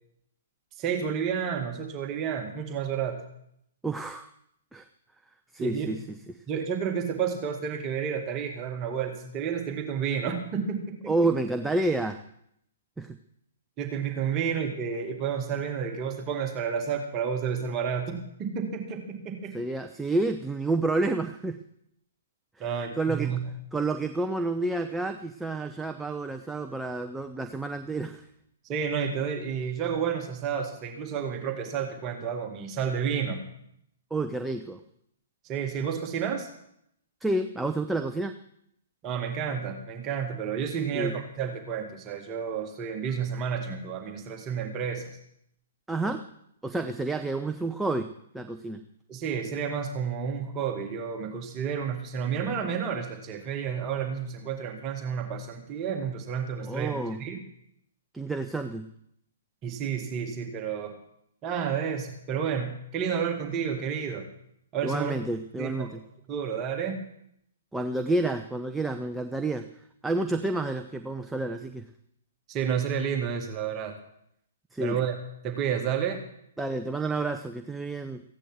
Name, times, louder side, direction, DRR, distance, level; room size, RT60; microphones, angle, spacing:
voice 1, 0.8-3.2 5.6-5.9 6.5-11.3 13.8-19.6 22.6-23.4 28.6-33.4 35.4-36.5 39.0-45.2 46.0-46.1 49.1-57.4 59.6-61.0 61.4-64.3 64.7-65.2 65.6-65.9 66.3-67.0 72.5-74.0 74.8-75.2 75.4-76.2, right 7 dB, 25° right, 4 dB, 1.9 m, -31 dB
voice 2, 3.8-4.3 4.7-4.9 5.5-6.4 11.1-12.2 13.0-13.2 19.5-21.6 22.6-23.3 23.7-28.2 34.1-34.8 37.2-38.4 40.9-41.2 45.9-46.2 46.6-48.1 48.3-48.8 56.6-57.2 58.1-58.9 64.8-66.0 67.7-69.7 70.0-71.9 74.7-75.0 76.6-78.2, right 2 dB, 5° right, 6 dB, 0.7 m, -29 dB
15.5 x 10.0 x 7.7 m, 0.73 s
figure-of-eight pair, 120°, 0 cm